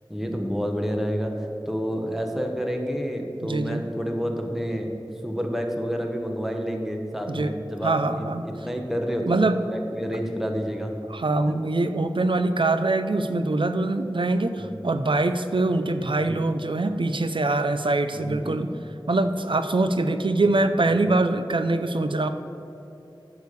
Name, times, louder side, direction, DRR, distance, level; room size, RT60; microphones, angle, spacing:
voice 1, 0.1-1.3 1.7-4.9 5.2-8.3 8.6-9.2 9.5-10.9 11.5-11.6 14.6-14.7 16.2-16.4 18.1-18.6 21.1-21.2, equal, 5° right, 2 dB, 1.1 m, -29 dB
voice 2, 3.4-3.8 7.3-7.5 7.8-8.4 9.3-9.6 11.1-18.7 19.1-22.3, right 2 dB, 70° right, 9 dB, 0.5 m, -23 dB
9.2 x 5.0 x 6.7 m, 3.0 s
wide cardioid pair, 50°, 9 cm